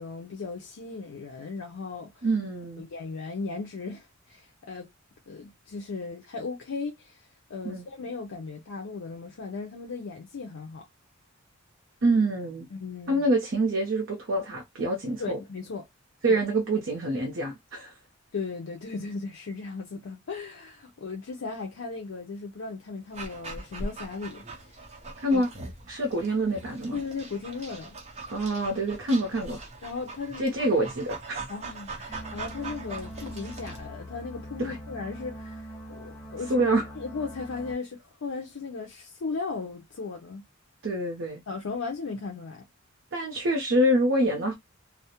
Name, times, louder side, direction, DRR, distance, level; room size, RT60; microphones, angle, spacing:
voice 1, 0.0-2.3 2.8-4.9 5.3-10.9 12.7-13.3 15.2-15.9 16.3-16.4 18.3-24.9 25.3-25.4 26.9-28.0 29.8-30.6 31.5-36.5 37.0-40.5 41.5-42.6, left 4 dB, 75° left, 0.5 m, -37 dB
voice 2, 2.2-2.9 7.6-7.8 12.0-12.7 13.1-15.4 16.2-17.9 25.2-25.5 25.9-27.0 28.3-29.6 30.4-31.4 34.6-34.8 36.5-36.8 40.8-41.4 43.1-44.5, right 1 dB, 65° right, 0.6 m, -26 dB
Dog, 23.1-33.9, right 3 dB, 35° right, 0.7 m, -41 dB
sound 1, 32.1-37.7, equal, 15° left, 1.0 m, -42 dB
2.3 x 2.0 x 2.8 m
head